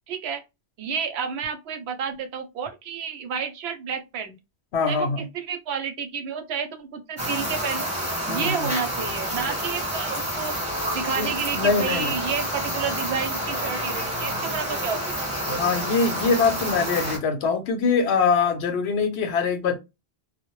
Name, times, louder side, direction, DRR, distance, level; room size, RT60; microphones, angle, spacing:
voice 1, 0.1-0.4 0.8-4.4 4.9-7.9 8.3-10.5 10.9-15.2, right 6 dB, 80° right, 0.8 m, -30 dB
voice 2, 4.7-5.2 8.3-8.7 11.2-12.1 15.5-19.8, left 5 dB, 80° left, 0.9 m, -23 dB
sound 1, 7.2-17.2, right 1 dB, 5° right, 1.0 m, -29 dB
2.1 x 2.0 x 2.9 m
omnidirectional pair, 1.1 m